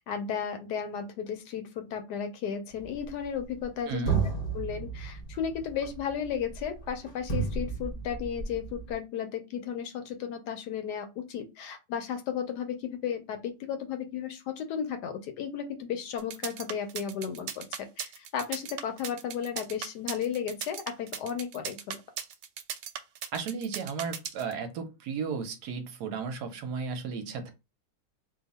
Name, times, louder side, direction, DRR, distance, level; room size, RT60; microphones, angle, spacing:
voice 1, 0.1-4.0 4.5-22.0, left 8 dB, 75° left, 7 dB, 1.1 m, -34 dB
sound 1, 2.7-3.7 4.1-8.9, right 5 dB, 45° left, 0.7 m, -33 dB
voice 2, 3.9-4.2 23.3-27.5, right 5 dB, 70° right, 7 dB, 1.1 m, -34 dB
sound 2, 16.2-24.5, right 8 dB, 90° right, 1.3 m, -37 dB
2.8 x 2.3 x 4.0 m, 0.26 s
omnidirectional pair, 1.9 m